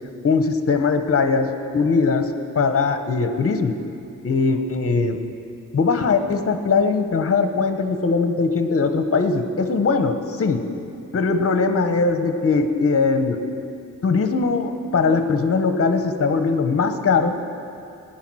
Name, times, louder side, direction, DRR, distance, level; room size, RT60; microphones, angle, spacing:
voice 1, 0.2-2.3 2.5-3.8 4.2-5.2 5.7-10.6 11.1-13.4 14.0-17.4, left 4 dB, 45° left, 7 dB, 1.0 m, -20 dB
16.0 x 10.0 x 6.2 m, 2.6 s
wide cardioid pair, 140°, 32 cm